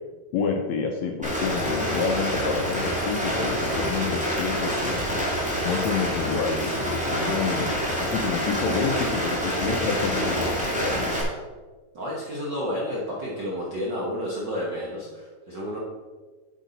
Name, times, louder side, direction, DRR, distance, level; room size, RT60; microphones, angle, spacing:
voice 1, 0.3-5.2 5.6-7.7 8.0-11.2, left 5 dB, 75° left, 2 dB, 1.7 m, -28 dB
Rain, 1.2-11.2, equal, 5° right, 0.9 m, -27 dB
voice 2, 11.9-15.8, equal, 60° right, -5 dB, 1.2 m, -31 dB
7.9 x 7.3 x 4.1 m, 1.4 s
omnidirectional pair, 3.8 m